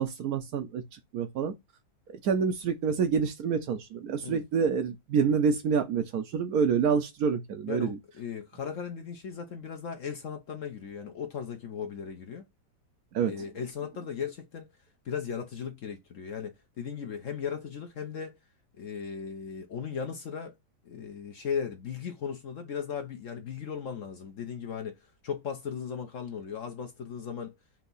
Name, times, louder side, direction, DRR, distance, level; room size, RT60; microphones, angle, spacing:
voice 1, 0.0-1.5 2.2-8.0 13.1-13.3, right 6 dB, 65° right, 1.0 m, -27 dB
voice 2, 7.7-12.4 13.2-14.7 15.0-18.4 18.8-20.5 20.8-25.0 25.2-27.6, left 7 dB, 60° left, 0.9 m, -37 dB
4.5 x 2.9 x 3.9 m
omnidirectional pair, 1.9 m